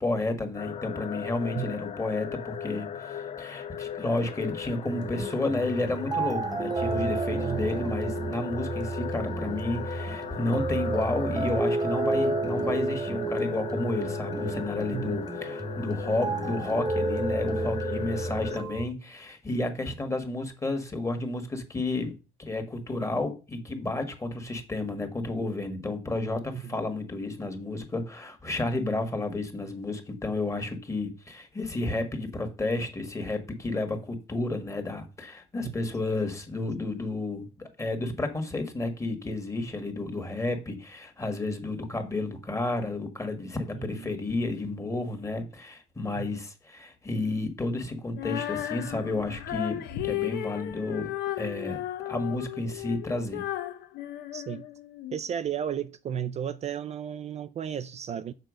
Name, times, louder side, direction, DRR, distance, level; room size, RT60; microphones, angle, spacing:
voice 1, 0.0-53.4, left 2 dB, 15° left, 1.7 m, -31 dB
sound 1, 0.5-18.6, left 8 dB, 40° left, 0.6 m, -38 dB
sound 2, 4.8-18.8, right 3 dB, 20° right, 1.0 m, -31 dB
voice 2, 43.8-44.1 46.2-46.3 54.3-54.6 55.1-58.3, right 9 dB, 40° right, 0.4 m, -34 dB
Female singing, 48.1-55.2, left 13 dB, 75° left, 0.9 m, -34 dB
6.6 x 4.6 x 6.3 m
cardioid pair, 110°, 17 cm